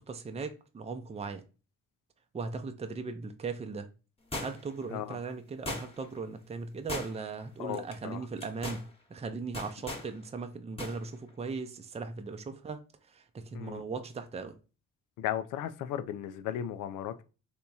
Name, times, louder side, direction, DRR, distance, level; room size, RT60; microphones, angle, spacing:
voice 1, 0.0-1.4 2.3-3.9 4.4-8.8 9.1-12.8 13.1-14.6, right 4 dB, 20° right, 0.5 m, -38 dB
sound 1, 4.3-4.8 5.7-6.2 6.9-7.4 7.7-7.9 8.4-8.8 9.5-10.1 10.8-11.0 11.3-11.4, left 1 dB, 20° left, 1.1 m, -38 dB
voice 2, 7.6-8.2 13.5-13.8 15.2-17.2, left 11 dB, 85° left, 0.5 m, -36 dB
3.5 x 2.8 x 4.1 m
cardioid pair, 90°, 30 cm